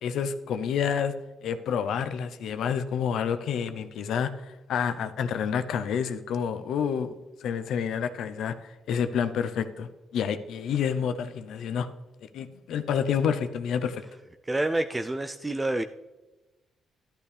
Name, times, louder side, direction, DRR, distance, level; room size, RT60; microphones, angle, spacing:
voice 1, 0.0-1.1 1.4-4.3 4.7-8.5 8.9-9.9 10.1-11.9 12.3-14.0, left 7 dB, 75° left, 10 dB, 0.7 m, -28 dB
voice 2, 14.5-15.8, right 2 dB, 15° right, 8 dB, 0.4 m, -28 dB
12.0 x 11.0 x 3.4 m, 1.1 s
cardioid pair, 90°, 0 cm